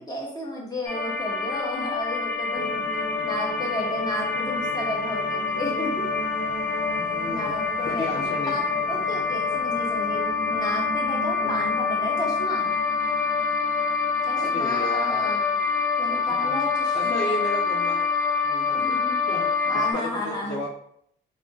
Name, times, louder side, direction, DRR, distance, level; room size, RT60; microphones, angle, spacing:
voice 1, 0.0-2.8 3.2-6.1 7.3-8.6 8.9-10.2 10.5-12.7 14.2-15.6 16.0-17.5 18.7-19.2 19.7-20.6, left 1 dB, 20° left, -3 dB, 1.1 m, -33 dB
sound 1, 0.8-19.9, left 5 dB, 45° left, 0.8 m, -26 dB
sound 2, 2.5-16.7, right 4 dB, 90° right, 0.7 m, -39 dB
voice 2, 7.0-7.5 7.8-8.5 8.8-8.9 11.4-11.7 14.3-15.4 16.3-16.6 16.9-18.0 18.4-19.0 19.3-20.7, left 1 dB, 60° left, -9 dB, 1.5 m, -34 dB
3.5 x 2.7 x 2.4 m, 0.70 s
cardioid pair, 90°, 20 cm